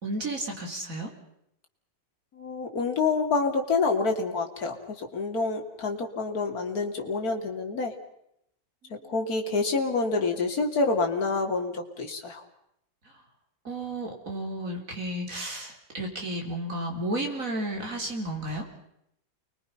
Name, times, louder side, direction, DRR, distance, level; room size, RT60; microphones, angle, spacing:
voice 1, 0.0-1.1 8.9-9.1 13.6-18.7, right 1 dB, 40° right, 1 dB, 4.7 m, -33 dB
voice 2, 2.3-7.9 9.0-12.4, left 3 dB, 45° left, 2 dB, 3.1 m, -27 dB
29.0 x 22.0 x 5.8 m, 0.79 s
omnidirectional pair, 2.2 m